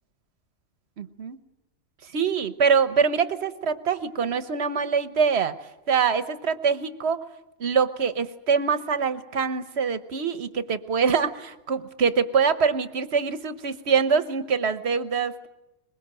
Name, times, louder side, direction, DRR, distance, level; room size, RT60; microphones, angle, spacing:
voice 1, 1.0-1.4 2.0-5.6 5.9-7.2 7.6-15.5, right 6 dB, 50° right, 12 dB, 1.3 m, -24 dB
22.5 x 21.5 x 8.9 m, 0.94 s
omnidirectional pair, 1.5 m